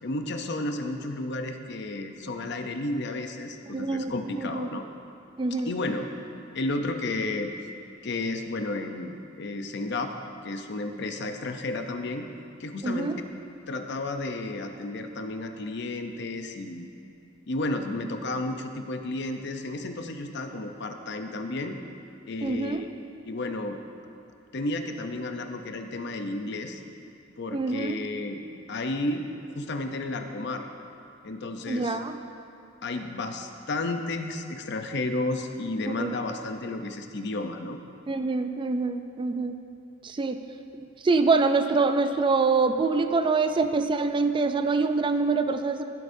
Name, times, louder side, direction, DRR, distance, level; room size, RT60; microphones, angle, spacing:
voice 1, 0.0-4.8 5.7-6.1 6.5-7.5 8.0-10.1 10.4-12.3 12.6-13.1 13.7-16.9 17.5-21.8 22.3-22.9 23.2-23.8 24.5-26.8 27.4-28.4 28.7-29.3 29.5-30.7 31.2-32.0 32.8-37.8, left 2 dB, 60° left, 6 dB, 0.7 m, -32 dB
voice 2, 3.7-4.1 4.5-4.7 5.4-5.7 12.8-13.2 22.4-22.8 27.5-28.0 31.7-32.2 35.9-36.1 38.1-39.5 40.0-40.4 40.7-45.8, right 3 dB, 25° right, 8 dB, 0.3 m, -25 dB
16.0 x 7.8 x 2.7 m, 2.6 s
head